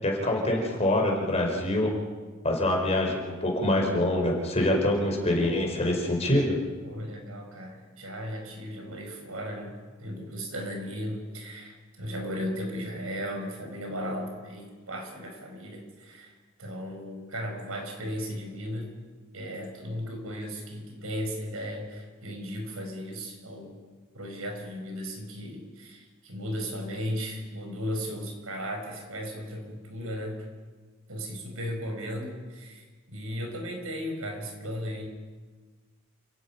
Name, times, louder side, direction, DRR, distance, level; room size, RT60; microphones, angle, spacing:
voice 1, 0.0-1.9 2.4-6.6, left 1 dB, 30° left, 0 dB, 4.7 m, -25 dB
voice 2, 6.8-16.3 16.6-18.9 19.3-23.8 24.1-30.5 31.1-35.1, equal, 85° right, 3 dB, 5.2 m, -36 dB
29.0 x 17.0 x 5.8 m, 1.4 s
head